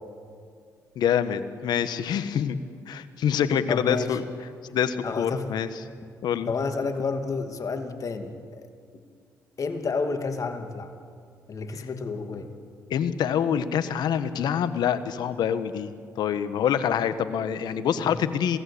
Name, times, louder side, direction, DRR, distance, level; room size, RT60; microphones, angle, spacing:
voice 1, 0.9-2.6 2.9-4.2 4.7-5.7 6.2-6.5 11.7-11.8 12.9-18.6, left 8 dB, 75° left, 12 dB, 1.4 m, -26 dB
voice 2, 3.7-4.2 5.0-5.5 6.5-8.6 9.6-10.9 11.5-12.5 17.9-18.1, left 4 dB, 50° left, 6 dB, 2.5 m, -30 dB
26.5 x 18.0 x 8.6 m, 2.2 s
supercardioid pair, 65°, 7 cm